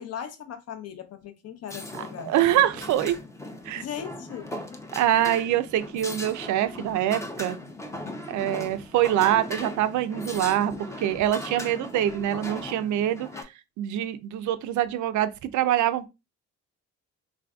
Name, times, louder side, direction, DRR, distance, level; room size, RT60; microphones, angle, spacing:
voice 1, 0.0-2.3 3.7-4.5, left 8 dB, 55° left, 0.7 m, -38 dB
sound 1, 1.7-13.4, left 1 dB, 10° left, 0.5 m, -38 dB
voice 2, 2.0-3.2 3.6-3.8 5.0-7.6 8.3-13.3 13.8-16.1, right 12 dB, 75° right, 0.5 m, -25 dB
3.3 x 2.5 x 2.3 m
cardioid pair, 90°, 30 cm